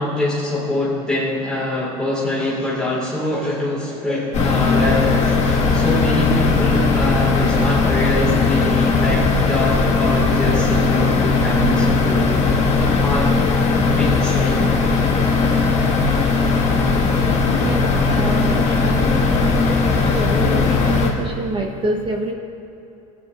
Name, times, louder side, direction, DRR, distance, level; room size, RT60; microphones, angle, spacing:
voice 1, 0.0-12.3 12.8-13.4 13.8-14.8, left 1 dB, 5° left, -7 dB, 2.0 m, -24 dB
sound 1, 4.3-21.1, left 4 dB, 40° left, 1.9 m, -18 dB
voice 2, 17.6-22.3, right 2 dB, 25° right, 2 dB, 1.1 m, -27 dB
15.5 x 9.6 x 2.6 m, 2.9 s
supercardioid pair, 95°, 19 cm